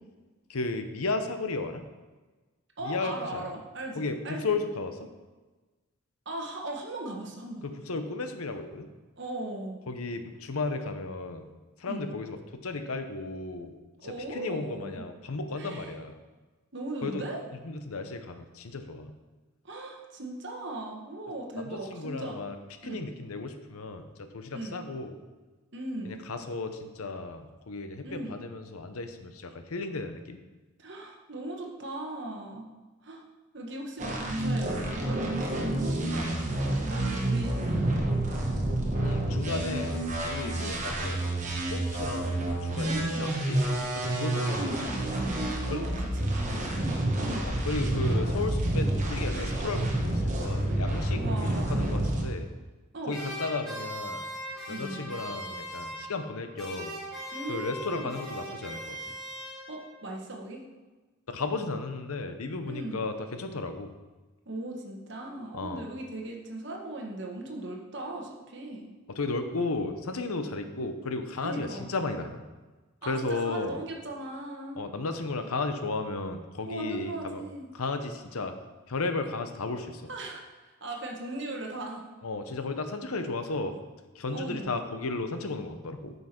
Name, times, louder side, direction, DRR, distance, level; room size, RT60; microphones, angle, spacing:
voice 1, 0.5-1.8 2.8-3.5 3.9-5.1 7.6-8.9 9.9-11.5 11.8-12.4 12.6-13.7 14.0-16.1 17.0-17.3 17.6-19.1 21.6-22.6 22.8-25.2 26.0-30.4 39.0-41.3 41.7-44.8 45.7-45.8 47.4-52.5 53.1-54.2 54.7-56.9 57.5-59.0 61.3-63.9 65.5-65.8 69.1-72.4 73.1-73.8 74.8-77.4 77.7-78.5 78.9-80.0 82.2-83.8 84.1-86.1, left 3 dB, 85° left, 8 dB, 0.8 m, -34 dB
voice 2, 2.8-4.6 6.2-7.6 9.2-9.8 11.9-12.1 14.0-15.0 15.6-15.9 16.7-17.4 19.6-22.4 22.8-23.0 24.5-24.8 25.7-26.1 28.0-28.4 30.8-32.7 33.0-33.2 33.5-38.0 40.4-40.7 42.8-43.3 44.3-44.9 45.3-47.0 47.3-47.5 51.1-51.9 52.9-53.2 54.7-55.2 57.3-58.1 59.7-60.6 62.7-63.0 64.4-68.9 70.7-70.9 71.4-71.9 73.0-74.8 76.7-77.7 80.1-82.0 84.3-84.8, right 2 dB, 55° right, 1 dB, 1.3 m, -38 dB
sound 1, 34.0-52.2, right 1 dB, 35° right, 1.1 m, -29 dB
sound 2, 53.1-56.3 56.6-60.0, equal, ahead, 2.7 m, -39 dB
9.3 x 5.6 x 4.4 m, 1.2 s
head